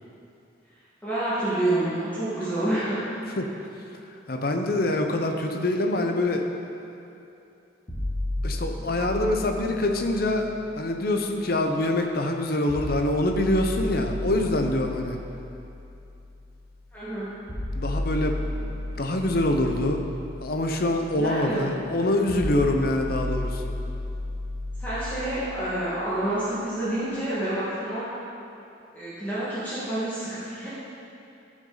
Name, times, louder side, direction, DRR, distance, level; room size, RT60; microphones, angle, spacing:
voice 1, 1.0-3.0 16.9-17.3 21.1-21.7 24.8-28.1 28.9-30.7, right 1 dB, 10° left, -12 dB, 1.7 m, -28 dB
voice 2, 4.3-6.4 8.4-10.5 10.7-15.2 17.7-18.4 19.0-20.0 20.4-23.7, left 1 dB, 50° left, 4 dB, 0.8 m, -25 dB
sound 1, 7.9-11.9 12.7-26.7, left 1 dB, 30° left, 2.2 m, -34 dB
14.5 x 6.2 x 4.0 m, 2.7 s
head